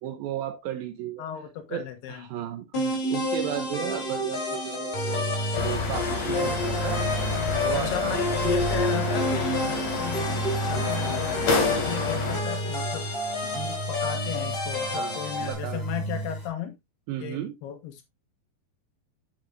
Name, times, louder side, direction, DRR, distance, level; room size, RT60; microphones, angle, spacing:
voice 1, 0.0-1.2 1.7-2.7 3.1-7.1 7.6-8.2 14.8-15.8 17.1-17.5, right 11 dB, 75° right, 2.3 m, -34 dB
voice 2, 1.2-2.2 2.7-3.0 7.7-13.1 13.4-16.7 17.2-18.1, left 9 dB, 75° left, 3.1 m, -36 dB
sound 1, 2.7-15.5, left 2 dB, 30° left, 3.8 m, -30 dB
sound 2, 4.9-16.5, right 2 dB, 10° left, 2.9 m, -33 dB
sound 3, 5.5-12.4, left 4 dB, 50° left, 3.9 m, -30 dB
8.0 x 7.8 x 2.6 m
omnidirectional pair, 4.9 m